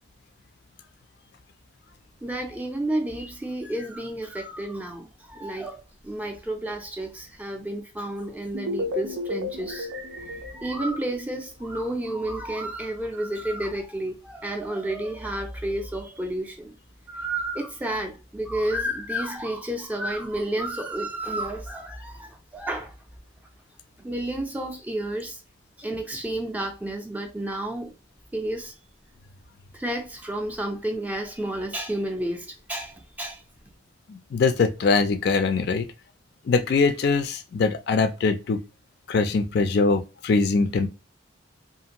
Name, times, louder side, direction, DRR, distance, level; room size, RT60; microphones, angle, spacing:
voice 1, 2.2-16.8 17.1-22.9 24.0-25.4 25.8-27.9 28.3-28.7 29.7-33.4, right 1 dB, 10° right, 0.4 m, -31 dB
sound 1, 8.5-11.5, left 2 dB, 85° right, 0.5 m, -33 dB
voice 2, 34.1-35.9 36.5-38.6 39.1-40.9, left 4 dB, 55° left, 0.3 m, -22 dB
2.5 x 2.4 x 2.9 m
head